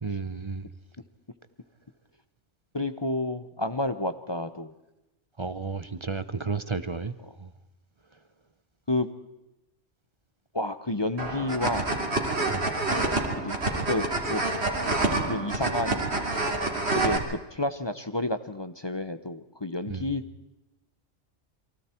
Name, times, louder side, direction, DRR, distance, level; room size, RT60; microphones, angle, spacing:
voice 1, 0.0-0.7 5.4-7.5 12.5-12.7 19.9-20.1, right 4 dB, 25° right, 0.8 m, -33 dB
voice 2, 2.7-4.7 8.9-9.1 10.5-12.0 13.4-13.5 13.8-14.4 15.3-16.0 16.9-20.2, left 2 dB, 25° left, 0.8 m, -30 dB
sound 1, 11.2-17.2, right 2 dB, 60° right, 3.2 m, -27 dB
29.0 x 23.5 x 4.5 m
omnidirectional pair, 1.2 m